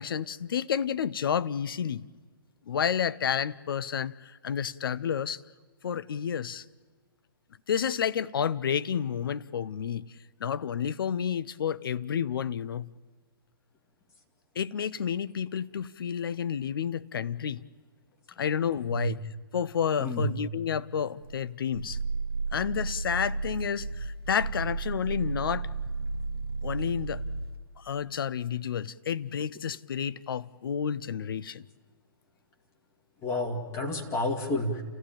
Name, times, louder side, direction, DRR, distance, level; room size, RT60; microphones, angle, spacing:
voice 1, 0.0-2.0 2.7-5.4 5.8-6.6 7.7-10.1 10.4-12.9 14.6-17.6 18.4-19.2 19.5-22.0 22.5-25.7 26.6-27.2 27.8-31.7, left 8 dB, 65° left, 0.6 m, -30 dB
voice 2, 20.0-20.3 33.2-34.8, left 1 dB, 20° left, 2.5 m, -30 dB
Growling, 21.2-27.6, right 4 dB, 80° right, 1.1 m, -33 dB
29.0 x 14.5 x 8.9 m
hypercardioid pair, 130°, 12 cm